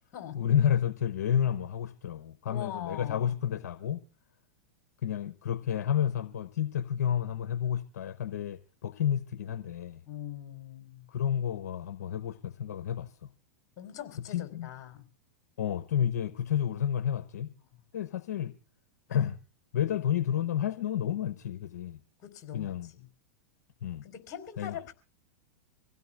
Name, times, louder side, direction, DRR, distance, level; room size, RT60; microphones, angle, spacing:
voice 1, 0.3-4.0 5.0-10.0 11.1-13.1 14.3-14.7 15.6-17.5 17.9-18.5 19.1-19.4 19.7-22.0 22.5-22.9 23.8-24.0 24.6-24.7, left 9 dB, 75° left, 0.8 m, -30 dB
voice 2, 2.4-3.4 10.0-11.1 13.8-15.1 17.7-17.9 22.2-23.1 24.0-24.9, left 10 dB, 45° left, 4.1 m, -42 dB
26.0 x 16.5 x 2.4 m
hypercardioid pair, 110°, 9 cm